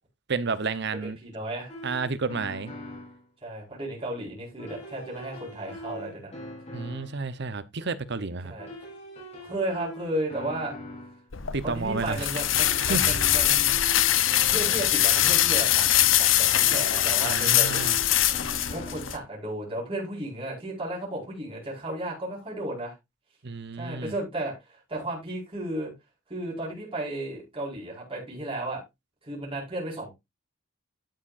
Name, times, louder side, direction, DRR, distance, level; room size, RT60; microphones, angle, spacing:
voice 1, 0.3-1.2 1.8-2.7 6.7-8.5 11.5-12.3 12.8-13.4 17.2-18.0 23.4-24.1, right 4 dB, 60° right, 0.9 m, -31 dB
voice 2, 1.0-1.7 3.4-6.3 8.4-8.7 9.4-10.8 11.6-13.8 14.5-15.9 16.2-17.9 18.7-22.9 23.8-25.9 26.3-28.8 29.2-30.1, right 1 dB, 30° right, 4.9 m, -34 dB
sound 1, 1.7-3.2 4.6-7.2 8.6-11.3 12.6-15.2 16.6-19.3, left 1 dB, 35° left, 4.2 m, -43 dB
sound 2, 11.3-19.2, left 12 dB, 70° left, 0.9 m, -23 dB
12.0 x 8.7 x 2.6 m
head